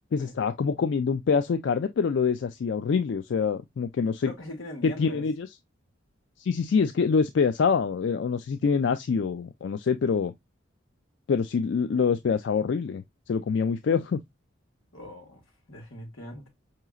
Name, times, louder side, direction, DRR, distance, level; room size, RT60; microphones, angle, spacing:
voice 1, 0.1-4.3 4.8-5.5 6.4-10.3 11.3-14.2, left 5 dB, 60° left, 0.3 m, -25 dB
voice 2, 4.2-5.3 14.9-15.4 15.7-16.5, left 1 dB, 90° left, 1.8 m, -41 dB
5.5 x 3.0 x 2.3 m
head